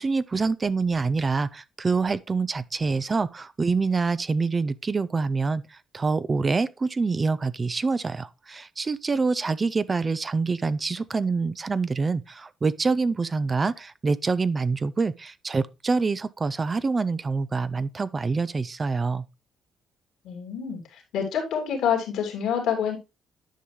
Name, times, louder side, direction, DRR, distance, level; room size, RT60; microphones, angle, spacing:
voice 1, 0.0-19.3, right 4 dB, 30° right, 0.4 m, -26 dB
voice 2, 20.2-23.0, left 8 dB, 85° left, 2.7 m, -27 dB
10.0 x 5.4 x 3.1 m
cardioid pair, 90°, 0 cm